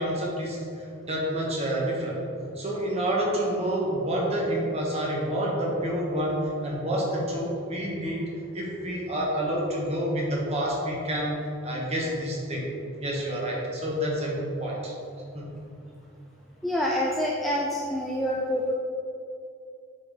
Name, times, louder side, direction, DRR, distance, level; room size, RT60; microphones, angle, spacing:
voice 1, 0.0-2.2 2.5-8.2 8.5-11.4 11.6-12.7 13.0-14.9 15.3-15.5, right 1 dB, 30° right, -3 dB, 1.1 m, -28 dB
voice 2, 16.6-18.7, equal, ahead, -4 dB, 0.3 m, -27 dB
7.9 x 4.0 x 3.4 m, 2.5 s
head